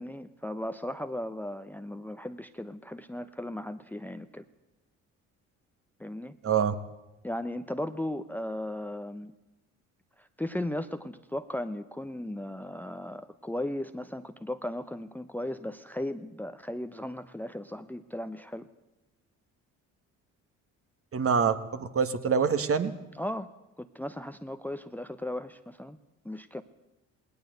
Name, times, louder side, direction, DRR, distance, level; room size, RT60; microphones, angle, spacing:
voice 1, 0.0-4.4 6.0-6.4 7.2-9.3 10.2-18.7 23.2-23.5 23.8-26.0 26.2-26.6, left 1 dB, 5° left, 11 dB, 0.9 m, -36 dB
voice 2, 6.4-6.7 21.1-22.9, right 6 dB, 40° right, 10 dB, 1.7 m, -25 dB
19.0 x 18.5 x 8.0 m, 0.97 s
supercardioid pair, 70°, 35 cm